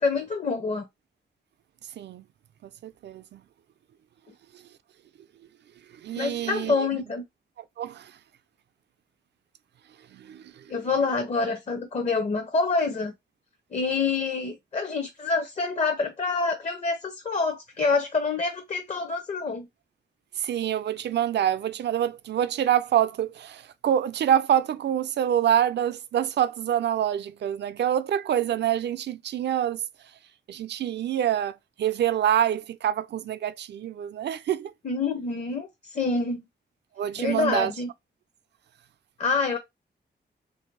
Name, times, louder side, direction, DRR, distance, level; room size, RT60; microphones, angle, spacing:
voice 1, 0.0-0.8 6.1-7.2 10.7-13.1 13.7-19.7 34.8-36.4 37.2-37.9 39.2-39.6, left 4 dB, 40° left, 0.6 m, -27 dB
voice 2, 2.8-3.4 6.0-6.9 7.8-8.1 10.1-10.6 20.4-29.8 30.5-34.7 37.0-37.7, right 10 dB, 75° right, 0.4 m, -26 dB
3.2 x 2.7 x 4.4 m
wide cardioid pair, 155°, 18 cm